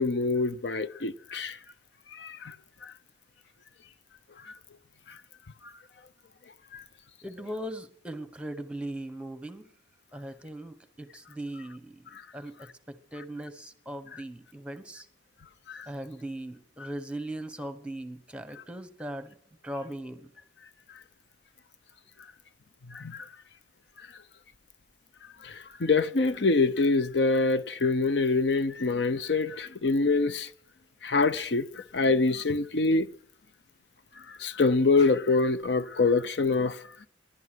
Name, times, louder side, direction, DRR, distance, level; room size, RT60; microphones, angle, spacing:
voice 1, 0.0-1.6 2.1-2.6 2.8-2.9 4.4-4.5 5.1-5.2 5.6-5.7 6.7-6.8 15.7-15.9 22.9-23.3 25.4-30.5 31.0-33.1 34.3-36.8, left 3 dB, 65° left, 0.7 m, -25 dB
voice 2, 7.2-9.7 10.1-15.1 15.9-19.4 19.6-20.3, right 1 dB, 5° right, 1.1 m, -39 dB
20.0 x 11.0 x 6.2 m
head